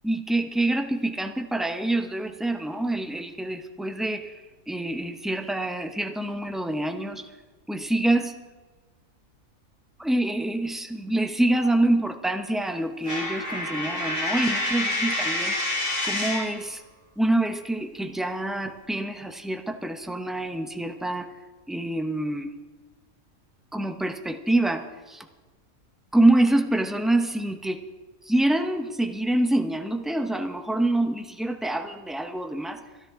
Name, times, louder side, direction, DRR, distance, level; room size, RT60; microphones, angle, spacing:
voice 1, 0.0-7.3 7.7-8.3 10.0-15.6 16.0-16.8 17.2-21.3 21.7-22.5 23.7-25.3 26.1-27.8 28.3-32.8, right 1 dB, ahead, 7 dB, 0.5 m, -26 dB
Coin (dropping), 13.0-16.6, left 1 dB, 60° right, 6.3 m, -28 dB
25.5 x 10.5 x 3.7 m, 1.3 s
omnidirectional pair, 1.5 m